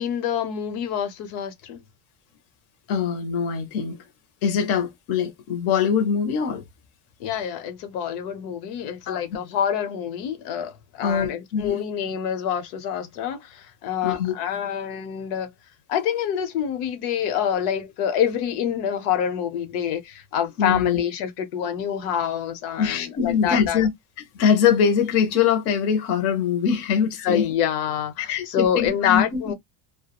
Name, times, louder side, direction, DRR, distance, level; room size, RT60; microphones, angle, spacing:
voice 1, 0.0-1.8 7.2-15.5 15.9-23.8 27.2-29.5, left 9 dB, 85° left, 0.8 m, -26 dB
voice 2, 2.9-4.0 4.4-6.6 9.1-9.2 11.0-11.8 14.0-14.3 20.6-21.0 22.8-23.9 24.3-27.5 28.2-29.5, left 7 dB, 35° left, 0.4 m, -23 dB
2.2 x 2.1 x 2.8 m
cardioid pair, 175°, 45 cm